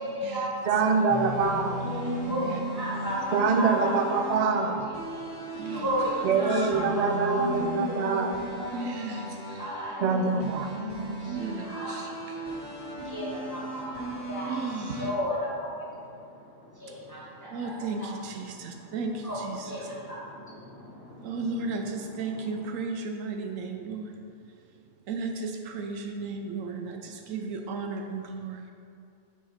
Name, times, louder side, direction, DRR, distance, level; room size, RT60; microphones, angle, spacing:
voice 1, 0.0-1.1 2.2-4.4 5.1-7.4 9.6-10.0 11.2-11.3 11.6-14.6 15.0-18.1 19.2-21.3, equal, 15° left, -8 dB, 1.9 m, -34 dB
voice 2, 0.7-1.9 3.3-4.9 6.2-8.3 10.0-10.7, right 4 dB, 55° right, 5 dB, 0.4 m, -25 dB
sound 1, 1.1-15.1, right 1 dB, 40° left, 1.9 m, -38 dB
voice 3, 1.8-2.7 6.3-6.4 6.7-9.2 10.0-10.4 10.7-11.2 13.5-13.6, equal, 60° left, -8 dB, 1.7 m, -36 dB
voice 4, 5.5-5.9 6.5-6.7 8.7-10.0 11.3-12.7 14.5-15.1 16.9-17.0 17.5-19.9 21.2-24.7 25.1-28.7, right 3 dB, 85° right, 4 dB, 1.0 m, -35 dB
8.1 x 4.9 x 4.2 m, 2.6 s
omnidirectional pair, 1.3 m